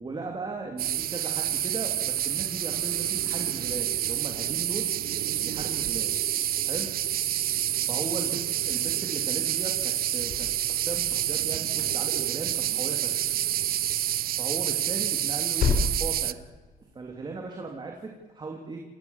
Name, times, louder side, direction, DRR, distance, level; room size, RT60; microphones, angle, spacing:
voice 1, 0.0-4.9 5.4-6.1 6.6-6.9 7.9-8.3 8.6-13.3 14.4-16.4 16.9-18.8, right 3 dB, 30° right, 1 dB, 3.1 m, -37 dB
sound 1, 0.8-16.3, right 12 dB, 75° right, 0.7 m, -28 dB
sound 2, 10.1-11.3 11.7-12.8 13.1-13.2 13.5-13.7 14.0-14.1 14.4-17.0, left 4 dB, 85° left, 5.6 m, -32 dB
28.0 x 18.0 x 7.4 m, 1.2 s
cardioid pair, 135°, 15 cm